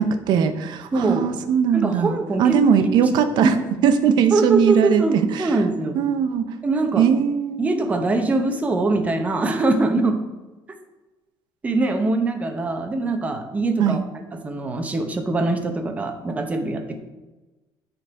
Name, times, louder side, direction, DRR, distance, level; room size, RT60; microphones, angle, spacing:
voice 1, 0.0-5.5 5.9-6.4 7.0-7.7 13.8-14.0, right 7 dB, 60° right, 9 dB, 0.7 m, -20 dB
voice 2, 0.9-1.3 1.7-2.6 2.9-3.1 3.4-3.6 4.3-6.0 6.6-7.0 7.6-10.2 11.6-14.0 14.3-17.0, right 2 dB, 15° right, 5 dB, 0.8 m, -23 dB
9.3 x 3.9 x 4.6 m, 1.1 s
cardioid pair, 160°, 8 cm